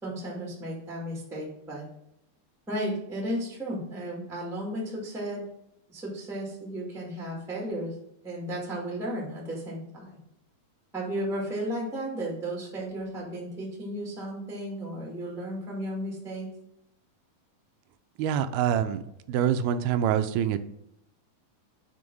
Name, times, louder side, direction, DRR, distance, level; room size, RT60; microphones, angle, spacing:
voice 1, 0.0-1.9 2.7-5.4 5.9-7.9 8.2-10.2 10.9-16.5, right 1 dB, ahead, -3 dB, 0.9 m, -34 dB
voice 2, 18.2-19.0 19.3-20.6, right 9 dB, 90° right, 10 dB, 2.4 m, -25 dB
7.2 x 3.5 x 5.3 m, 0.80 s
omnidirectional pair, 4.2 m